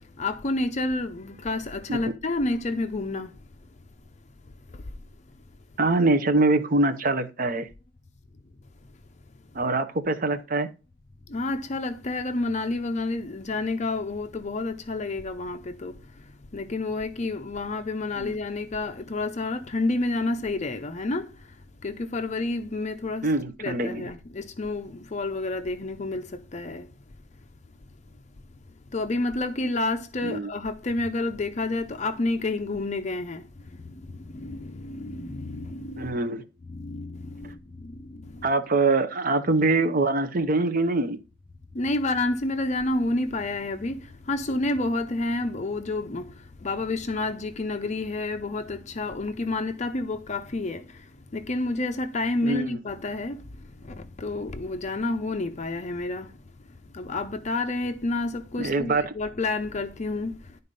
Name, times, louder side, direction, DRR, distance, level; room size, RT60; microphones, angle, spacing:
voice 1, 0.2-3.3 11.3-16.0 16.5-21.3 21.8-23.3 23.6-26.9 28.9-33.4 33.9-36.1 36.7-37.6 37.8-38.5 41.7-46.3 46.6-50.8 51.3-53.4 53.8-56.3 56.9-60.3, left 2 dB, 35° left, 0.6 m, -29 dB
voice 2, 5.8-7.7 9.5-10.7 18.2-18.4 23.2-24.1 30.2-30.5 36.0-36.4 38.4-41.2 52.4-52.8 58.6-59.1, right 2 dB, 45° right, 0.8 m, -24 dB
11.0 x 4.1 x 5.3 m
head